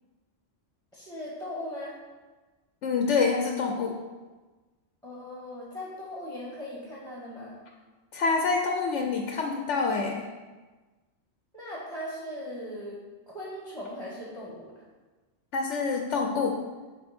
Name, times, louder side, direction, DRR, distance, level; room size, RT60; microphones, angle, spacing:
voice 1, 0.9-1.9 5.0-7.6 11.5-13.0 13.3-14.7, left 1 dB, 5° left, -6 dB, 1.7 m, -38 dB
voice 2, 2.8-4.0 8.1-10.3 15.5-16.6, left 4 dB, 75° left, 2 dB, 1.0 m, -26 dB
8.0 x 5.7 x 4.3 m, 1.3 s
omnidirectional pair, 1.3 m